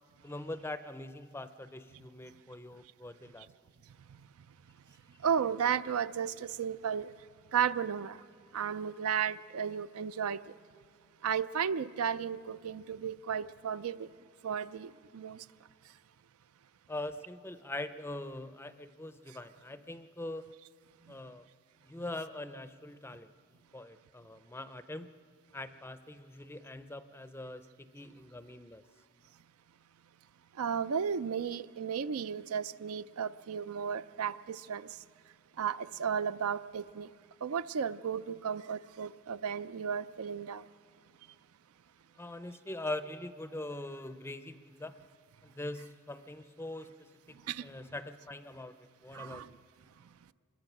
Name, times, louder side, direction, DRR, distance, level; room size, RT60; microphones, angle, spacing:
voice 1, 0.2-3.5 16.9-20.4 21.1-21.4 21.9-23.3 23.7-25.1 25.5-28.8 42.2-44.9 45.4-48.7 49.0-49.6, left 1 dB, 10° left, 0.5 m, -42 dB
voice 2, 5.2-7.1 7.5-8.2 8.5-10.5 11.2-14.1 14.4-15.4 30.6-35.0 35.6-37.1 37.4-40.6 47.5-47.7 49.1-49.5, right 7 dB, 80° right, 0.4 m, -34 dB
25.0 x 21.5 x 6.0 m
head